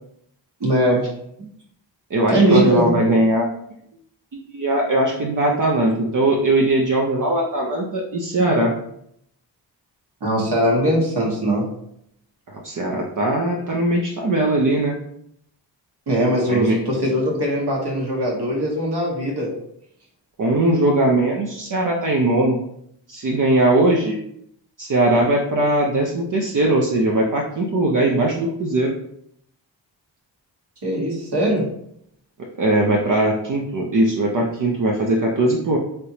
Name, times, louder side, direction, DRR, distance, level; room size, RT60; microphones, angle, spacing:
voice 1, 0.6-1.0 2.3-3.0 10.2-11.7 16.1-19.5 30.8-31.7, right 1 dB, 60° right, -3 dB, 1.3 m, -20 dB
voice 2, 2.1-3.5 4.3-8.7 12.5-15.0 16.5-16.8 20.4-22.6 23.1-24.2 24.8-28.9 32.6-35.8, right 1 dB, 45° right, -1 dB, 0.6 m, -20 dB
3.4 x 2.9 x 2.7 m, 0.72 s
cardioid pair, 55°, 44 cm